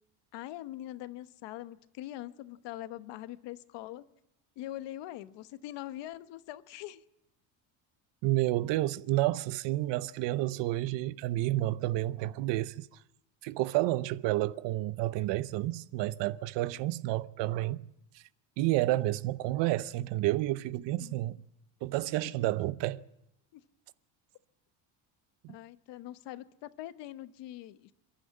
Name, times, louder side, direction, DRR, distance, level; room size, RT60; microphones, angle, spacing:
voice 1, 0.3-4.1 4.6-7.0 21.0-21.2 22.2-22.3 23.5-23.6 25.5-27.9, left 14 dB, 70° left, 1.1 m, -43 dB
voice 2, 8.2-12.9 13.4-17.9 18.1-18.2 18.6-21.4 21.8-23.0 25.4-25.5, right 16 dB, 75° right, 0.8 m, -30 dB
28.0 x 11.5 x 8.7 m
cardioid pair, 125°, 44 cm